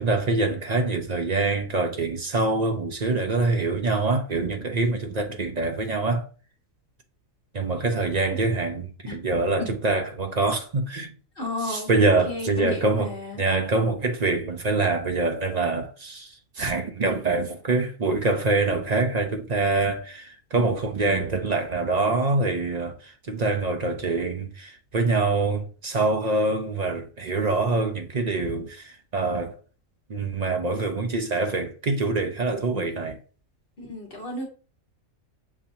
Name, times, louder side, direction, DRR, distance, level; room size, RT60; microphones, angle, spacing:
voice 1, 0.0-6.3 7.5-11.1 11.7-13.1 13.4-29.6 30.1-33.2, right 3 dB, 45° right, 0.5 m, -25 dB
voice 2, 11.3-13.4 32.8-32.9 33.8-34.4, left 2 dB, 45° left, 1.6 m, -33 dB
7.1 x 2.8 x 2.7 m
omnidirectional pair, 1.4 m